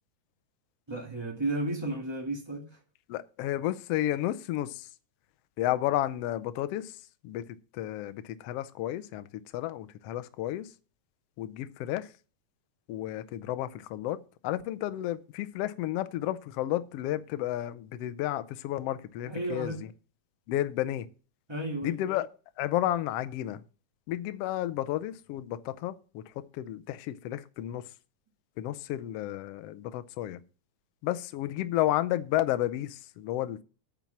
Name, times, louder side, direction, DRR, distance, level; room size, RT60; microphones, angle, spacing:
voice 1, 0.9-2.7 19.2-19.8 21.5-22.0, right 2 dB, 10° right, 1.4 m, -33 dB
voice 2, 3.1-4.9 5.6-6.9 7.2-7.4 7.7-9.3 9.5-10.7 11.4-12.1 12.9-19.9 20.5-21.1 21.8-22.3 22.6-23.6 24.1-27.8 28.6-30.4 31.0-33.6, left 13 dB, 80° left, 1.4 m, -32 dB
9.1 x 5.9 x 7.1 m
omnidirectional pair, 3.5 m